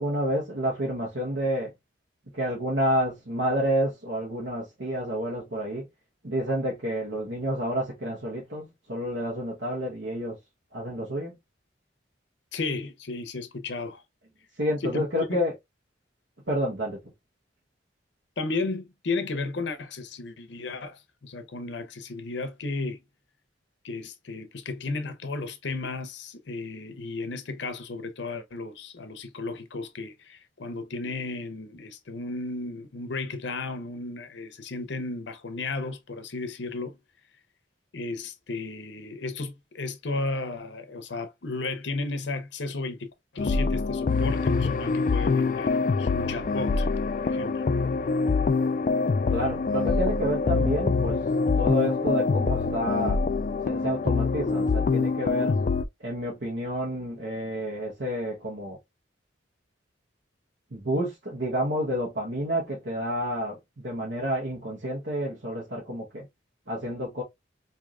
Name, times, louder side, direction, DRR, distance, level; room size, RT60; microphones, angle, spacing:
voice 1, 0.0-1.7 2.3-5.9 6.2-10.4 10.7-11.4 14.6-15.5 16.5-17.0 49.3-51.2 51.6-53.2 53.6-55.6 56.0-58.8 60.7-66.3 66.7-67.2, equal, 70° right, 1.3 m, -29 dB
voice 2, 12.5-14.0 14.8-15.0 15.3-15.4 18.4-23.0 23.8-37.0 37.9-46.9 47.2-47.6, left 3 dB, 70° left, 0.7 m, -34 dB
sound 1, 43.4-55.8, left 4 dB, 45° left, 0.3 m, -25 dB
4.7 x 2.7 x 2.3 m
head